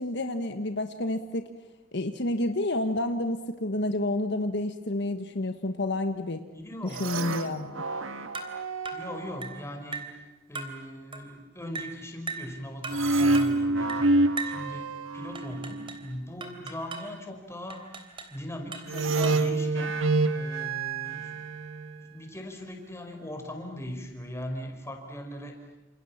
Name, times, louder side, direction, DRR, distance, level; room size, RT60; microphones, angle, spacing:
voice 1, 0.0-1.5 1.9-6.4 6.8-7.7, left 1 dB, 60° left, 7 dB, 1.4 m, -29 dB
voice 2, 6.5-7.1 8.9-10.1 10.5-14.1 14.4-17.9 18.3-20.0 20.3-21.3 22.0-25.6, left 1 dB, 15° left, 3 dB, 5.1 m, -39 dB
sound 1, 6.9-9.5 12.9-15.9 18.9-22.0, right 2 dB, 80° right, 1.7 m, -27 dB
sound 2, 8.3-8.6 8.9-9.1 9.4-9.6 9.9-10.2 10.6-10.8 11.1-11.3 11.8-12.0 12.3-12.5 12.8-13.1 13.3-13.6 13.9-14.1 14.4-14.6 15.4-16.1 16.4-17.1 17.7-18.4 18.7-19.5, right 4 dB, 25° right, 3.4 m, -38 dB
29.0 x 28.0 x 7.3 m, 1.1 s
head